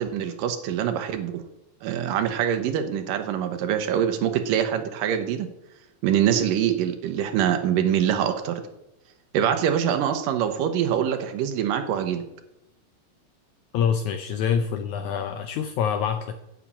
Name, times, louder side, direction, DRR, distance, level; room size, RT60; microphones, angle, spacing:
voice 1, 0.0-1.3 1.8-5.5 6.0-8.6 9.3-12.2, right 9 dB, 90° right, 7 dB, 2.6 m, -24 dB
voice 2, 13.7-16.3, left 7 dB, 75° left, 7 dB, 1.9 m, -25 dB
10.0 x 7.5 x 8.5 m, 0.89 s
omnidirectional pair, 3.8 m